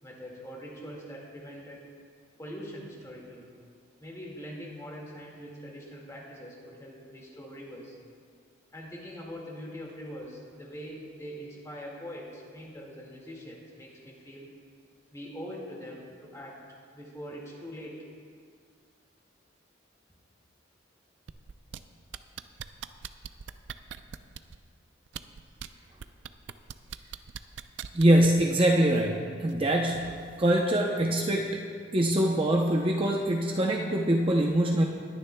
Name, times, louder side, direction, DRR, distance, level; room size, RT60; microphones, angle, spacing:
voice 1, 0.0-1.9 2.4-3.5 4.0-8.0 8.7-14.5 15.1-16.6 16.9-18.0, equal, 15° left, -2 dB, 1.9 m, -43 dB
sound 1, 21.3-21.8 22.1-24.6 25.1-25.7 26.0-28.4 29.5-29.6, right 8 dB, 70° right, 0.4 m, -40 dB
voice 2, 27.9-31.6 31.9-34.8, right 1 dB, 30° right, 0 dB, 0.6 m, -24 dB
20.5 x 10.0 x 2.2 m, 2.1 s
head